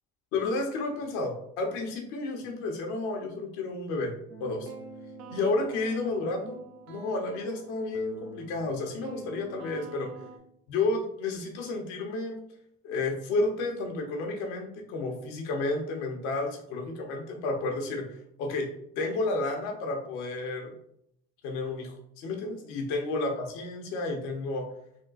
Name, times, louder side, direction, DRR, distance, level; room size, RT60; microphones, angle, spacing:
voice 1, 0.3-4.1 4.4-4.7 5.3-6.6 6.9-10.1 10.7-12.4 12.8-18.1 18.4-18.7 19.0-20.7 21.4-24.7, left 2 dB, 80° left, 3 dB, 0.9 m, -31 dB
sound 1, 4.3-10.4, right 3 dB, 60° right, 0.8 m, -46 dB
3.6 x 2.3 x 3.9 m, 0.73 s
supercardioid pair, 70°, 29 cm